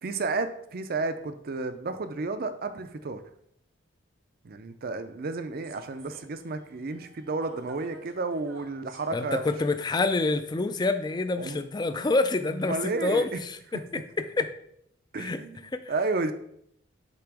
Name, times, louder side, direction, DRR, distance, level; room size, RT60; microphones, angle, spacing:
voice 1, 0.0-3.2 4.4-9.5 11.4-11.6 12.6-13.4 15.1-16.3, right 3 dB, 50° right, 9 dB, 0.5 m, -32 dB
Human voice / Subway metro underground, 5.6-11.3, right 2 dB, 75° right, 1.0 m, -53 dB
voice 2, 9.1-13.6 14.4-14.5 15.2-15.4 15.7-15.8, left 3 dB, 20° left, 9 dB, 0.3 m, -27 dB
6.9 x 2.9 x 4.7 m, 0.70 s
head